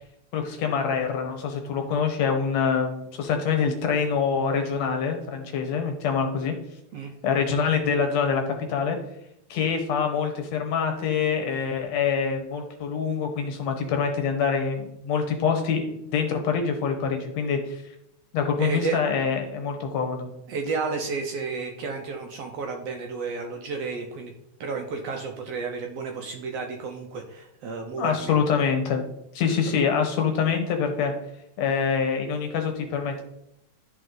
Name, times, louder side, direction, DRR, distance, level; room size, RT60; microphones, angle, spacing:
voice 1, 0.3-6.6 7.2-9.0 9.5-17.8 18.3-20.3 28.0-29.0 29.4-31.1 31.6-33.2, left 6 dB, 70° left, 4 dB, 2.0 m, -25 dB
voice 2, 18.6-19.0 20.5-24.3 24.6-28.4, right 4 dB, 70° right, 3 dB, 1.6 m, -32 dB
11.5 x 4.3 x 3.8 m, 0.81 s
omnidirectional pair, 3.4 m